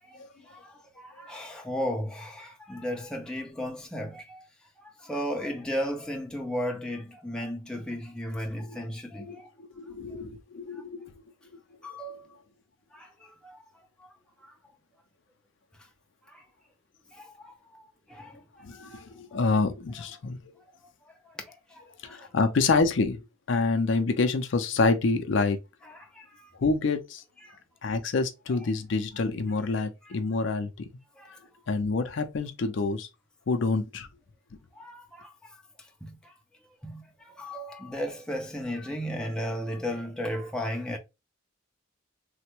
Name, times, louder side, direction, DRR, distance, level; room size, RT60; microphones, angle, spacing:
voice 1, 0.1-4.5 4.8-9.5 10.7-10.8 11.8-12.4 12.9-14.6 15.8-15.9 16.3-16.5 17.1-19.4 20.8-22.3 25.8-26.5 27.4-27.6 28.6-28.7 30.0-30.2 31.2-31.4 34.7-36.4 36.8-41.0, equal, 5° left, 0.4 m, -36 dB
voice 2, 9.8-11.1 11.9-12.0 18.6-20.5 22.0-23.2 23.5-25.6 26.6-27.2 27.8-30.9 31.7-33.1 33.5-34.1, left 3 dB, 60° left, 0.4 m, -27 dB
3.3 x 2.1 x 2.9 m
head